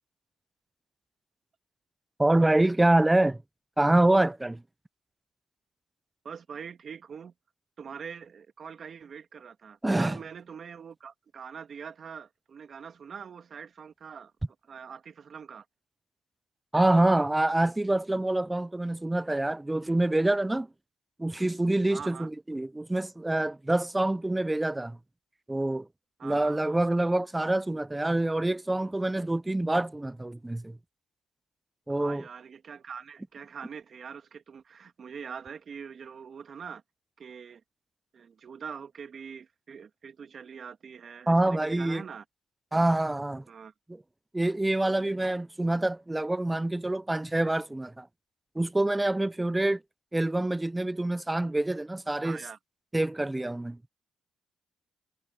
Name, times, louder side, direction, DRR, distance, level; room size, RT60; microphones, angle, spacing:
voice 1, 2.2-3.4 3.8-4.6 9.8-10.2 16.7-20.7 21.2-25.0 25.5-25.9 26.2-30.8 31.9-32.2 41.3-42.0 42.7-43.4 43.9-44.0 44.3-48.1 48.6-49.8 50.1-52.4 52.9-53.8, right 1 dB, 10° right, 0.5 m, -26 dB
voice 2, 6.2-7.3 7.8-14.3 14.7-15.7 21.9-22.3 26.2-26.8 31.9-36.8 37.2-37.6 38.1-42.2 43.5-43.7 52.2-52.6, right 6 dB, 50° right, 2.0 m, -43 dB
cardioid pair, 90°, 0 cm